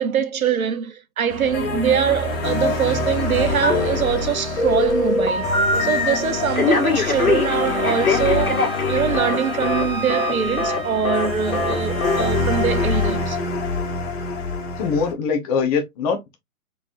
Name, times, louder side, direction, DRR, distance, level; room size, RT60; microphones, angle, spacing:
voice 1, 0.0-5.5 5.8-13.4, right 8 dB, 70° right, 0.9 m, -23 dB
sound 1, 1.3-15.1, left 3 dB, 40° left, 1.6 m, -26 dB
Telephone, 3.6-4.2 4.6-6.2 6.6-9.4 9.6-9.8 10.1-10.3 10.6-10.8 11.0-11.3 11.5-11.7 12.0-12.2, left 3 dB, 70° left, 1.8 m, -22 dB
Wind instrument woodwind instrument, 5.3-13.2, right 1 dB, 15° right, 1.2 m, -34 dB
voice 2, 14.8-16.4, left 5 dB, 25° left, 0.8 m, -22 dB
4.0 x 3.5 x 2.5 m
figure-of-eight pair, 115°, 44 cm